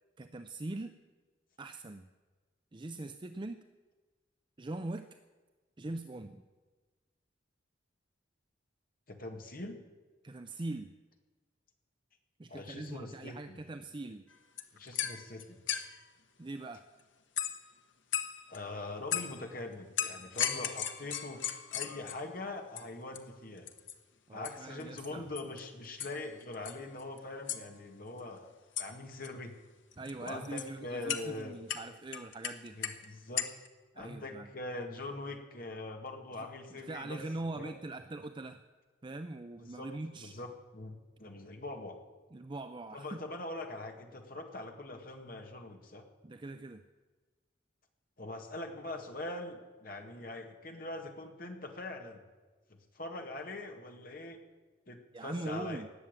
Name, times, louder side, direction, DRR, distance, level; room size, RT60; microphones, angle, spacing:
voice 1, 0.2-1.0 1.6-2.0 2.7-3.6 4.6-5.1 5.8-6.4 10.2-10.9 12.4-14.2 16.4-16.8 24.3-25.3 30.0-32.8 33.9-34.5 36.4-36.5 36.7-38.6 39.0-40.3 42.3-43.2 46.2-46.8 55.1-55.9, right 2 dB, 25° right, 8 dB, 0.5 m, -42 dB
voice 2, 9.1-9.8 12.5-13.6 14.7-15.8 18.5-23.7 24.3-29.5 30.2-31.6 32.7-33.5 34.0-37.2 37.5-37.8 39.6-39.9 40.2-40.5 40.7-42.0 42.9-46.1 48.2-52.2 52.7-54.4 54.9-55.8, left 2 dB, 50° left, 4 dB, 1.9 m, -43 dB
sound 1, 14.3-14.4 14.6-16.0 17.4-17.7 18.1-18.6 19.1-19.4 20.0-22.3 22.8-22.9 23.1-23.2 23.6-23.9 24.4-24.5 24.8-25.1 25.4-25.6 26.0-26.2 26.5-27.2 27.5-27.6 28.8-28.9 29.1-29.3 29.9-30.7 31.1-31.2 31.7-33.0 33.4-33.7, left 9 dB, 80° left, 1.1 m, -36 dB
18.5 x 7.3 x 8.8 m, 1.3 s
head